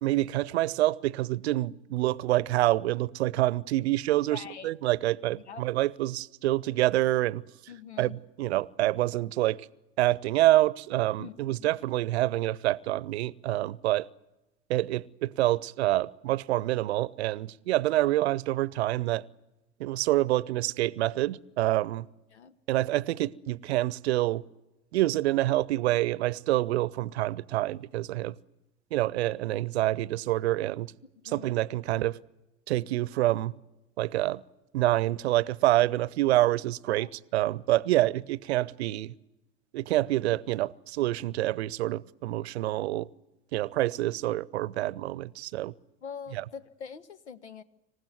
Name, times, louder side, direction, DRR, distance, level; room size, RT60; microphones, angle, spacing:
voice 1, 0.0-7.4 8.0-9.7 10.0-14.1 14.7-19.2 19.8-22.1 22.7-24.4 24.9-28.3 28.9-30.9 31.2-32.2 32.7-33.5 34.0-34.4 34.7-39.1 39.7-43.1 43.5-45.7 46.3-46.4, right 16 dB, 70° right, 0.8 m, -27 dB
voice 2, 4.3-4.7 5.4-5.7 7.7-8.2 11.2-11.7 22.3-22.6 31.2-31.5 36.9-37.1 46.0-47.6, left 7 dB, 80° left, 1.2 m, -44 dB
26.5 x 15.5 x 9.3 m
figure-of-eight pair, 75°, 33 cm